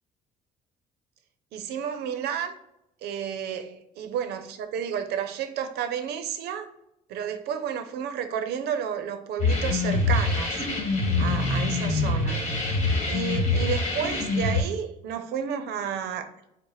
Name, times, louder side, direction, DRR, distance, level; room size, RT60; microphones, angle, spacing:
voice 1, 1.5-2.5 3.0-6.7 7.1-10.7 11.2-16.3, right 8 dB, 75° right, 0.6 m, -31 dB
sound 1, 9.4-14.6, left 3 dB, 40° left, 1.4 m, -25 dB
4.7 x 2.1 x 4.1 m
cardioid pair, 110°, 17 cm